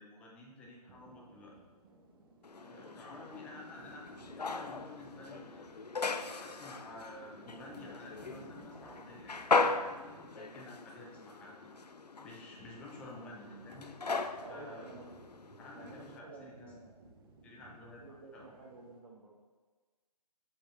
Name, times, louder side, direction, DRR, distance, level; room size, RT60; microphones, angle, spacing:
voice 1, 0.0-1.6 2.6-5.7 6.4-11.8 12.2-13.9 14.5-14.9 15.6-16.7 17.4-18.0 18.3-18.6, left 2 dB, 5° left, -2 dB, 0.4 m, -51 dB
sound 1, 0.9-19.0, right 2 dB, 35° right, 0.8 m, -58 dB
sound 2, 2.4-16.2, left 3 dB, 90° left, 0.4 m, -38 dB
voice 2, 2.6-2.9 12.2-12.4 14.4-15.3 15.7-16.9 18.0-19.4, right 3 dB, 50° right, -5 dB, 1.2 m, -52 dB
7.0 x 4.5 x 3.8 m, 1.3 s
figure-of-eight pair, 135°, 20 cm